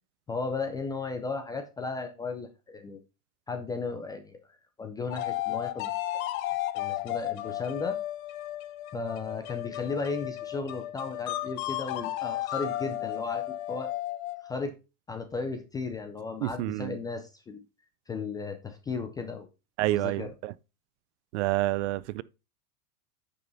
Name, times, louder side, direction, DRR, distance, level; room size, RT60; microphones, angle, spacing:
voice 1, 0.3-3.0 3.5-6.2 6.7-8.0 8.9-13.9 14.4-14.7 15.1-17.6 18.1-19.5 19.9-20.3, left 4 dB, 10° left, 0.4 m, -35 dB
sound 1, 5.1-14.5, left 14 dB, 60° left, 1.1 m, -34 dB
voice 2, 16.4-17.0 19.8-20.5 21.3-22.2, right 18 dB, 50° right, 0.5 m, -28 dB
9.3 x 5.5 x 4.0 m
supercardioid pair, 140°, 45 cm